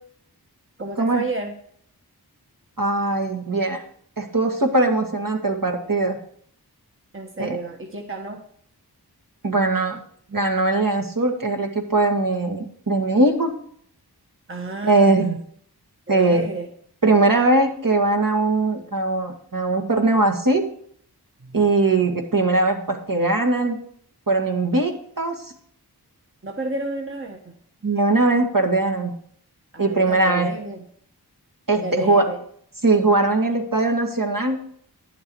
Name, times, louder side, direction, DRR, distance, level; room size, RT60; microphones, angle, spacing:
voice 1, 0.8-1.5 7.1-8.4 14.5-15.2 16.1-16.7 21.4-21.6 26.4-27.5 29.7-30.8 31.8-32.4, right 2 dB, 30° right, 2 dB, 1.3 m, -31 dB
voice 2, 2.8-3.8 4.2-6.2 7.4-7.6 9.4-10.0 10.3-13.5 14.8-15.4 16.1-16.4 17.0-20.6 21.5-23.8 24.3-25.5 27.8-29.1 29.8-30.5 31.7-32.3 32.8-34.6, right 2 dB, 55° right, 2 dB, 1.9 m, -20 dB
10.5 x 7.3 x 4.7 m, 0.62 s
wide cardioid pair, 45°, 39 cm